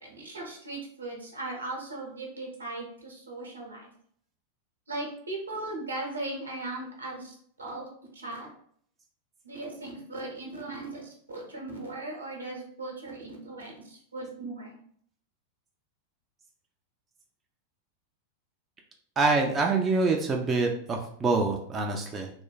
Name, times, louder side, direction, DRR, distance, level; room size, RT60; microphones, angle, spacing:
voice 1, 0.0-3.9 4.9-7.9 8.1-8.5 9.4-14.8, right 2 dB, 75° right, -1 dB, 0.8 m, -38 dB
voice 2, 19.2-22.3, right 3 dB, 20° right, 2 dB, 0.3 m, -25 dB
3.0 x 2.2 x 2.3 m, 0.63 s
figure-of-eight pair, 90°, 0 cm